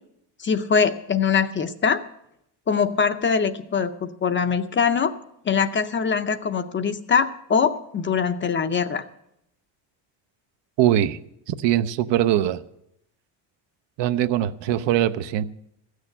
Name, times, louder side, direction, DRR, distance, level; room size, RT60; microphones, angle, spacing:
voice 1, 0.4-2.0 2.7-5.1 5.5-9.0, left 6 dB, 25° left, 0.5 m, -22 dB
voice 2, 10.8-11.2 11.5-12.6 14.0-15.4, right 12 dB, 70° right, 0.7 m, -21 dB
15.0 x 6.5 x 8.7 m
cardioid pair, 160°, 46 cm